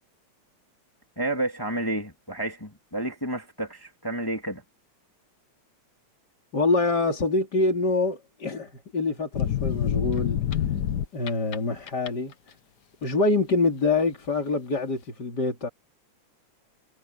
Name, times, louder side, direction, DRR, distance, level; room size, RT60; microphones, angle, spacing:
voice 1, 1.2-4.6, right 1 dB, 10° left, 2.1 m, -30 dB
voice 2, 6.5-10.4 11.1-12.3 13.0-15.7, left 3 dB, 35° left, 3.4 m, -25 dB
sound 1, 9.3-11.6 11.9-12.3, left 10 dB, 70° left, 0.9 m, -26 dB
omnidirectional pair, 3.3 m